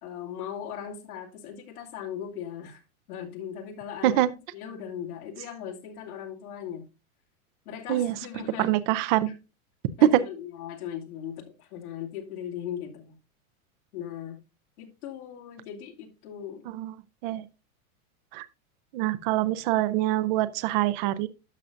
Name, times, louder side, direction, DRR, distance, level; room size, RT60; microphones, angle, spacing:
voice 1, 0.0-2.8 3.1-4.2 4.5-6.9 7.7-8.8 9.2-9.3 10.0-13.2 13.9-14.4 14.8-16.7, left 9 dB, 80° left, 2.6 m, -38 dB
voice 2, 8.6-9.3 10.0-10.2 16.7-16.9 17.2-17.5 18.3-18.5 18.9-21.3, right 13 dB, 35° right, 0.5 m, -24 dB
12.0 x 6.4 x 2.5 m
supercardioid pair, 155°, 43 cm